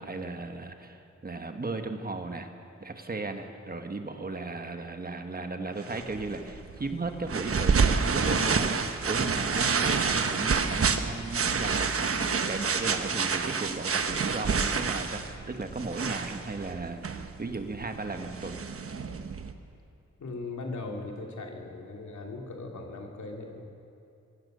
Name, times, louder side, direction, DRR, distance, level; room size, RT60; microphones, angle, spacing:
voice 1, 0.0-2.5 2.8-18.6, right 3 dB, 30° right, 6 dB, 1.3 m, -36 dB
sound 1, 5.8-19.5, right 5 dB, 50° right, 1.1 m, -28 dB
voice 2, 20.2-23.7, left 3 dB, 70° left, 1 dB, 2.9 m, -39 dB
24.0 x 16.0 x 6.7 m, 2.6 s
wide cardioid pair, 155°, 30 cm